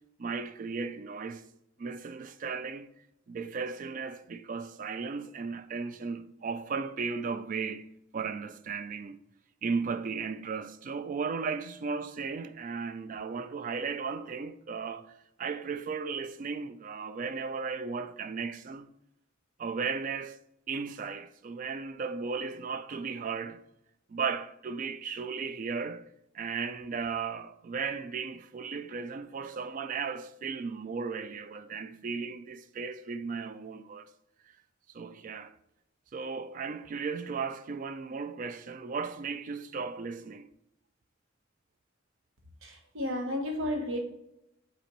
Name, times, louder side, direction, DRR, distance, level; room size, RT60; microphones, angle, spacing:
voice 1, 0.2-1.4 1.8-2.9 3.3-9.2 9.6-18.9 19.6-20.4 20.7-23.6 24.1-34.1 34.9-35.5 36.1-40.5, right 5 dB, 40° right, 0.3 m, -36 dB
voice 2, 42.6-44.0, left 1 dB, 70° right, 0.9 m, -32 dB
7.9 x 4.2 x 3.0 m
head